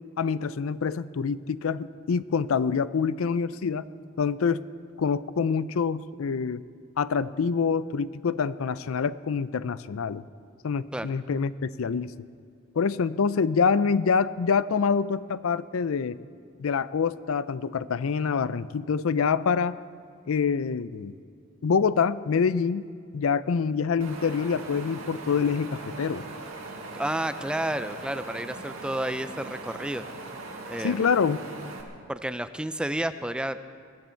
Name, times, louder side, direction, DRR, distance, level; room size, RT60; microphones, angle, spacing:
voice 1, 0.2-3.9 4.2-4.6 5.0-6.6 7.0-10.2 10.6-12.1 12.8-16.2 16.6-19.8 20.3-21.1 21.6-22.9 23.1-26.2 30.8-31.4, left 5 dB, 75° left, 16 dB, 0.4 m, -26 dB
Wind, 24.0-31.8, right 2 dB, 75° right, 2.0 m, -40 dB
voice 2, 26.9-30.1 30.7-31.1 32.1-33.6, right 1 dB, 5° right, 11 dB, 0.4 m, -31 dB
20.5 x 14.0 x 4.5 m, 2.2 s
head